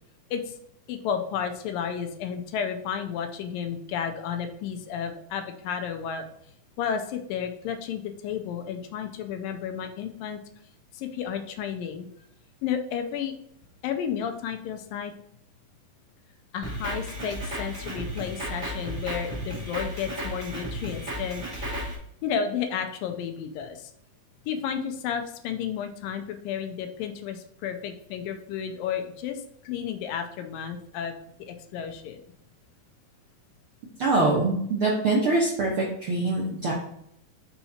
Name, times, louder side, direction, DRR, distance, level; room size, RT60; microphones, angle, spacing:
voice 1, 0.9-6.3 6.8-10.4 10.9-12.1 12.6-13.3 13.8-15.1 16.5-21.8 22.2-23.9 24.5-32.2, left 8 dB, 80° left, 6 dB, 2.2 m, -32 dB
Drum kit, 16.6-21.9, equal, 15° right, 2.1 m, -34 dB
voice 2, 34.0-36.7, right 2 dB, 75° right, -4 dB, 1.2 m, -24 dB
5.6 x 4.2 x 4.3 m, 0.71 s
omnidirectional pair, 4.1 m